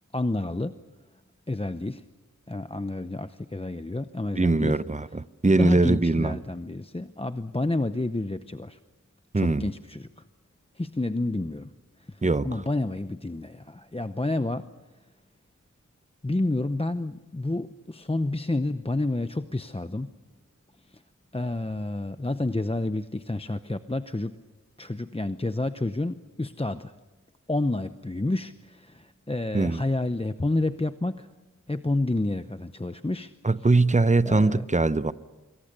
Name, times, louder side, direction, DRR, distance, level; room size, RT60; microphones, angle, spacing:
voice 1, 0.1-0.7 1.5-2.0 2.5-4.8 5.5-8.8 9.3-10.1 10.8-11.7 12.1-14.7 16.2-20.1 20.9-21.0 21.3-24.4 24.8-26.9 27.5-31.3 31.7-33.3 34.2-34.6, left 2 dB, 20° left, 0.7 m, -29 dB
voice 2, 4.4-6.4 9.3-9.6 12.2-12.5 29.5-29.8 33.4-35.1, right 3 dB, 25° right, 0.7 m, -22 dB
26.5 x 22.5 x 6.7 m
wide cardioid pair, 40°, 32 cm